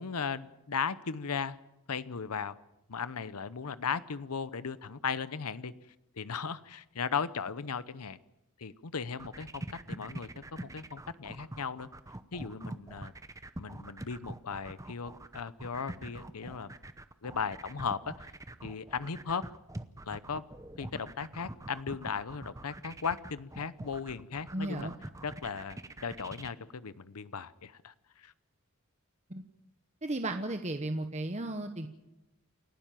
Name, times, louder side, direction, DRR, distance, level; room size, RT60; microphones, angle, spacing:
voice 1, 0.0-1.6 1.9-2.6 2.9-5.7 6.2-8.2 8.6-11.9 12.3-13.1 13.6-16.7 17.2-18.3 18.6-19.5 20.0-20.4 20.8-24.9 25.2-28.3, left 6 dB, 85° left, 15 dB, 0.8 m, -37 dB
sound 1, 9.1-26.5, right 1 dB, 15° right, 0.8 m, -44 dB
voice 2, 24.5-24.9 29.3-29.4 30.0-31.9, right 1 dB, 30° right, 6 dB, 1.1 m, -34 dB
28.5 x 12.0 x 9.1 m, 0.93 s
head